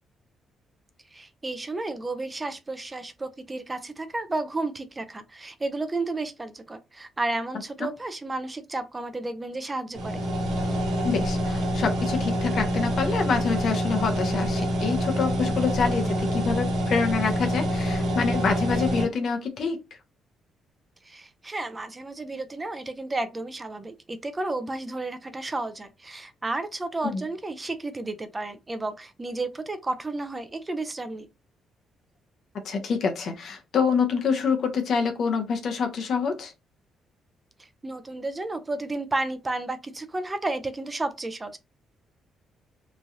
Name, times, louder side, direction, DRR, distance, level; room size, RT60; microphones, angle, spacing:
voice 1, 1.1-10.2 21.0-31.3 37.6-41.6, right 2 dB, 20° right, 0.4 m, -32 dB
sound 1, 9.9-19.1, equal, 80° right, 1.0 m, -26 dB
voice 2, 11.0-19.8 27.1-27.2 32.6-36.5, left 5 dB, 60° left, 0.7 m, -26 dB
3.0 x 2.4 x 2.7 m
cardioid pair, 90°, 0 cm